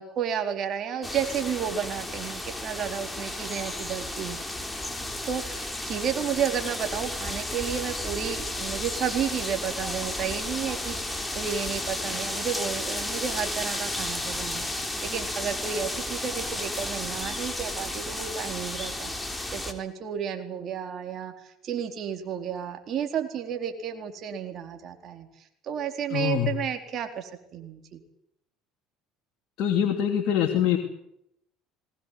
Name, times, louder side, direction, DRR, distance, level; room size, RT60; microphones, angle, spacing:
voice 1, 0.0-4.4 5.3-19.1 19.5-25.3 25.6-28.0, right 8 dB, 50° right, 5 dB, 4.2 m, -32 dB
sound 1, 1.0-19.7, left 1 dB, 10° left, 3.7 m, -33 dB
voice 2, 26.1-26.5 29.6-30.8, left 10 dB, 55° left, 2 dB, 2.9 m, -24 dB
20.5 x 19.0 x 9.5 m, 0.79 s
hypercardioid pair, 80°, 0 cm